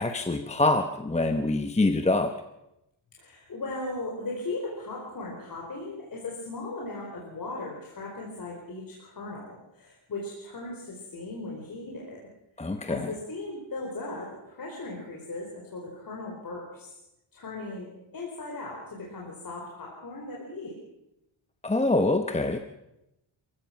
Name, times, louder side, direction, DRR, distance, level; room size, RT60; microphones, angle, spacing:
voice 1, 0.0-2.3 12.6-13.1 21.6-22.6, left 2 dB, 15° left, 7 dB, 0.9 m, -25 dB
voice 2, 3.2-12.3 12.9-16.9 17.3-17.9 18.1-20.8, left 2 dB, 45° left, -2 dB, 4.7 m, -37 dB
27.5 x 15.5 x 6.0 m, 0.89 s
wide cardioid pair, 145°, 48 cm